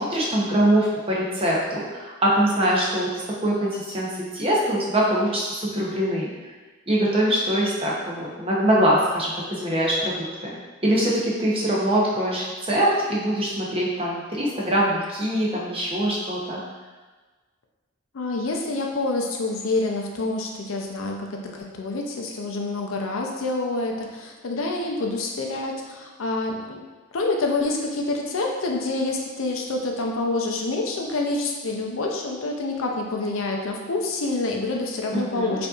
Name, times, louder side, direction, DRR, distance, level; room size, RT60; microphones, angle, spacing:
voice 1, 0.0-3.1 3.4-4.1 4.3-6.3 6.9-10.6 10.8-16.6 35.1-35.6, right 1 dB, 25° right, -5 dB, 0.7 m, -23 dB
voice 2, 18.1-26.8 27.1-35.7, left 2 dB, 70° left, 1 dB, 0.5 m, -27 dB
5.1 x 2.6 x 2.4 m, 1.3 s
head